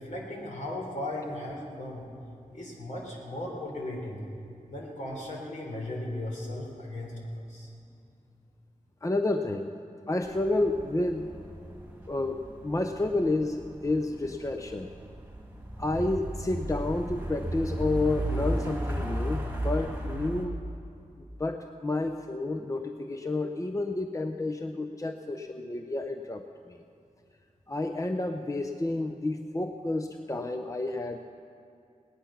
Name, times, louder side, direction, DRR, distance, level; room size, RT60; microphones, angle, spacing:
voice 1, 0.0-2.1 2.5-4.2 4.7-7.2 7.5-7.7, left 1 dB, 60° left, -2 dB, 3.5 m, -36 dB
voice 2, 9.0-9.7 10.1-11.3 12.1-14.9 15.8-20.6 21.4-26.8 27.7-31.3, left 2 dB, 25° left, 6 dB, 0.6 m, -30 dB
sound 1, 10.2-20.4, right 1 dB, 15° right, 2.2 m, -35 dB
18.5 x 10.5 x 5.7 m, 2.5 s
wide cardioid pair, 75°, 14 cm